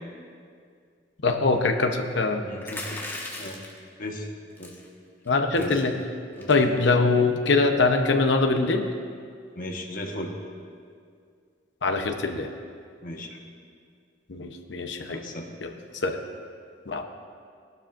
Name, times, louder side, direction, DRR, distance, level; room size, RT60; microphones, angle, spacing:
voice 1, 1.2-2.4 5.3-6.0 6.5-8.9 11.8-12.5 14.3-15.2 15.6-16.2 16.9-17.0, left 3 dB, 70° left, 5 dB, 0.9 m, -23 dB
voice 2, 2.4-3.0 3.4-3.6 4.0-4.3 4.6-4.7 5.5-5.7 6.4-6.5 9.6-10.3 13.0-13.4 15.1-15.5, left 1 dB, 50° left, 1 dB, 1.3 m, -35 dB
sound 1, 2.6-3.8 4.6-4.9 5.2-5.3 5.5-5.8 6.4-6.6, left 2 dB, 10° left, 1.6 m, -37 dB
17.5 x 12.0 x 2.6 m, 2.2 s
head